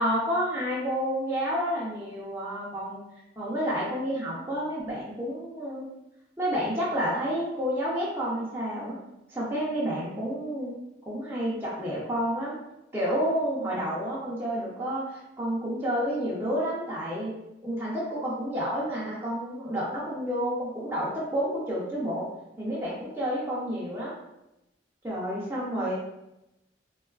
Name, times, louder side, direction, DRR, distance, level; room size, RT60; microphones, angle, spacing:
voice 1, 0.0-3.0 3.4-5.9 6.4-9.0 9.3-10.7 11.1-12.6 12.9-17.3 17.6-22.3 22.6-24.2 25.0-25.9, equal, 10° right, -8 dB, 0.5 m, -30 dB
3.5 x 2.3 x 2.3 m, 0.90 s
head